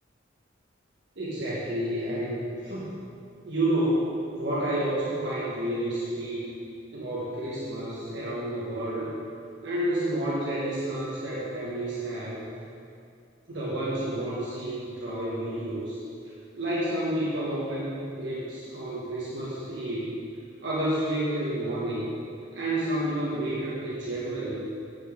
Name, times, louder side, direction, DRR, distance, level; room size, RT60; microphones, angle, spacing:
voice 1, 1.2-3.0 3.4-6.4 6.9-9.1 9.6-12.4 13.5-16.0 16.6-20.2 20.6-22.1 22.5-24.6, right 1 dB, 70° right, -8 dB, 1.5 m, -30 dB
9.5 x 8.3 x 3.8 m, 2.5 s
head